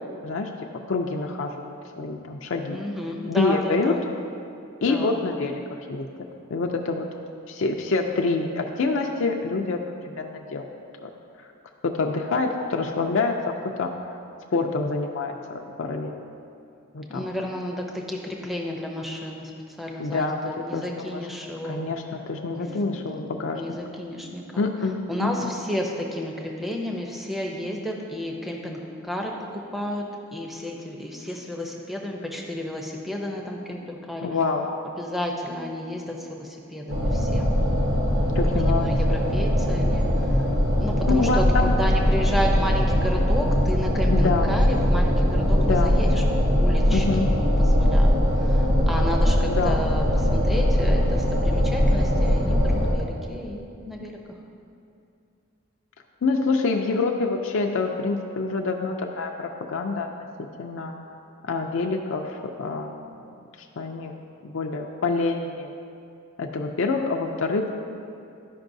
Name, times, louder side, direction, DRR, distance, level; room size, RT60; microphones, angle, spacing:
voice 1, 0.9-2.8 3.3-3.9 4.8-6.1 6.5-7.1 7.5-10.7 11.0-11.1 11.4-11.5 11.8-13.4 13.8-13.9 14.5-16.2 16.9-17.3 20.0-21.2 21.6-23.6 24.6-25.5 34.2-34.6 38.4-39.2 41.1-41.8 44.1-44.5 45.6-45.9 46.9-47.3 49.4-49.8 56.2-60.1 60.4-60.9 61.4-62.9 63.8-64.1 64.4-65.7 66.4-67.7, left 3 dB, 65° left, 1 dB, 0.5 m, -26 dB
voice 2, 2.7-4.0 4.9-5.2 17.1-19.5 19.8-21.8 22.5-23.1 23.5-24.7 25.1-28.8 29.0-30.0 30.3-34.3 35.0-37.5 38.6-40.4 40.8-46.2 46.6-54.2, equal, ahead, 0 dB, 0.6 m, -32 dB
sound 1, 36.9-52.9, equal, 55° right, 1.2 m, -21 dB
13.0 x 5.3 x 2.6 m, 2.6 s
head